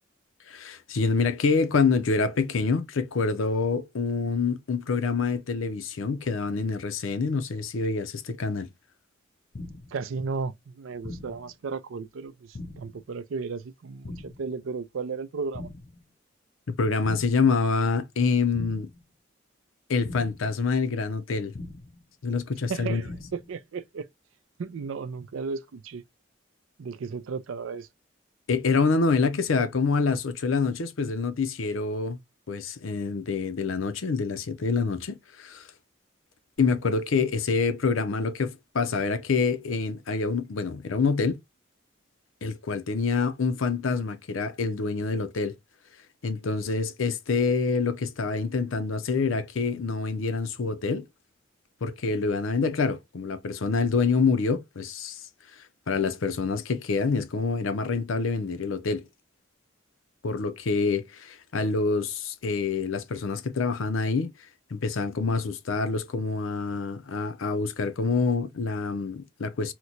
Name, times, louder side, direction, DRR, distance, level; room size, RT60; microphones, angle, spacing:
voice 1, 0.5-8.7 16.8-18.9 19.9-21.5 22.2-23.0 28.5-32.2 32.5-35.7 36.6-41.4 42.4-45.5 46.2-51.0 51.8-55.2 55.9-59.1 60.2-64.3 64.7-69.7, left 4 dB, 85° left, 0.6 m, -26 dB
sound 1, 9.5-10.0 11.0-11.5 12.5-13.0 14.0-14.5 15.5-16.0 17.0-17.5 18.5-19.0 20.0-20.5 21.5-22.0 23.0-23.5, left 2 dB, 45° left, 0.5 m, -41 dB
voice 2, 9.9-15.7 22.7-24.1 24.6-26.0 26.8-27.9, right 5 dB, 85° right, 0.4 m, -34 dB
2.9 x 2.1 x 3.8 m
head